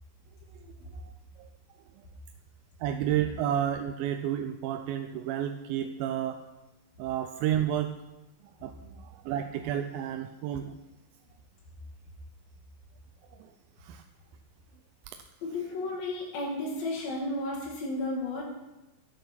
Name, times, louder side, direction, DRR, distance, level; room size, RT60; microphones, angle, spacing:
voice 1, 2.8-6.4 7.0-7.9 8.6-10.8 13.8-14.0, right 10 dB, 90° right, 7 dB, 2.4 m, -31 dB
voice 2, 15.4-18.5, left 2 dB, 75° left, -4 dB, 3.9 m, -33 dB
12.5 x 8.5 x 5.8 m, 1.0 s
omnidirectional pair, 4.1 m